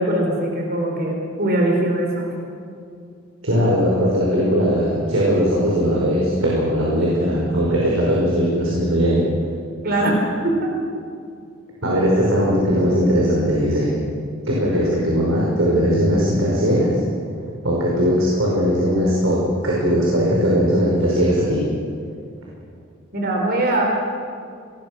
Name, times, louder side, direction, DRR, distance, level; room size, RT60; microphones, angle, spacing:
voice 1, 0.0-2.3 9.8-10.7 23.1-23.8, right 1 dB, 50° right, 1 dB, 4.3 m, -21 dB
voice 2, 3.4-9.3 11.8-13.9 14.4-17.0 17.6-21.6, equal, 80° right, -4 dB, 5.5 m, -19 dB
25.5 x 20.5 x 6.4 m, 2.3 s
head